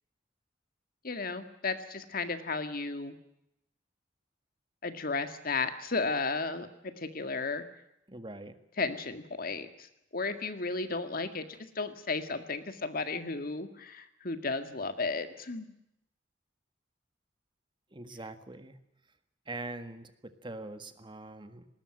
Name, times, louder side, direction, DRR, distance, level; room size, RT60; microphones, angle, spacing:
voice 1, 1.0-3.2 4.8-7.6 8.8-15.7, left 3 dB, 50° left, 9 dB, 2.0 m, -34 dB
voice 2, 8.1-8.6 17.9-18.8 19.5-21.7, right 2 dB, 25° right, 10 dB, 1.7 m, -43 dB
20.0 x 19.5 x 9.0 m, 0.82 s
head